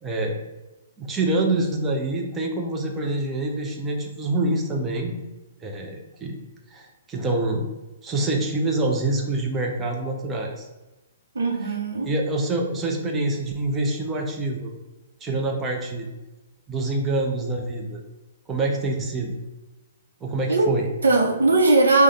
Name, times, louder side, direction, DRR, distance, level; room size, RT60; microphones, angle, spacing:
voice 1, 0.0-0.4 1.0-5.1 5.6-6.4 6.7-7.7 8.0-10.7 12.0-14.7 15.2-16.1 16.7-18.0 18.5-19.3 20.2-20.9, right 2 dB, 15° right, 0 dB, 0.8 m, -26 dB
voice 2, 11.3-12.1 20.5-20.7 21.0-22.0, right 2 dB, 70° right, 1 dB, 0.9 m, -19 dB
4.8 x 2.3 x 4.1 m, 1.1 s
figure-of-eight pair, 120°, 0 cm